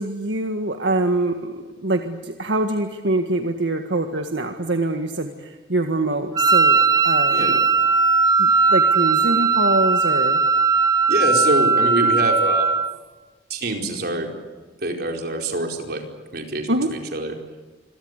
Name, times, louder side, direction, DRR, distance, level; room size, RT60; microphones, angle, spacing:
voice 1, 0.0-6.8 7.0-7.7 8.4-10.4 16.7-16.9, right 2 dB, 80° right, 5 dB, 1.8 m, -24 dB
Wind instrument woodwind instrument, 6.3-12.9, right 4 dB, 20° right, 0.8 m, -18 dB
voice 2, 7.3-7.6 11.1-12.8 13.5-14.3 14.8-16.0 16.3-17.3, right 2 dB, 60° right, 3 dB, 4.8 m, -25 dB
28.0 x 23.0 x 8.3 m, 1.3 s
head